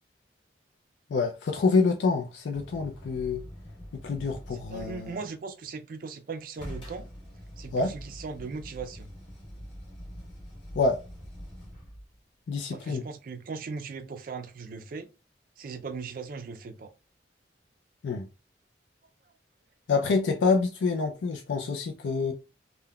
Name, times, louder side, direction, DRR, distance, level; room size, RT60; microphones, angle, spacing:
voice 1, 1.1-3.5 3.9-5.2 7.7-7.9 10.7-11.0 12.5-13.0 18.0-18.3 19.9-22.3, left 4 dB, 80° left, 0.4 m, -27 dB
sound 1, 2.5-5.2 6.6-12.2 15.0-15.1, equal, 30° left, 1.3 m, -44 dB
voice 2, 4.5-7.0 7.6-9.1 12.7-15.1 15.6-16.9, right 4 dB, 50° right, 0.3 m, -38 dB
3.6 x 2.1 x 2.2 m
head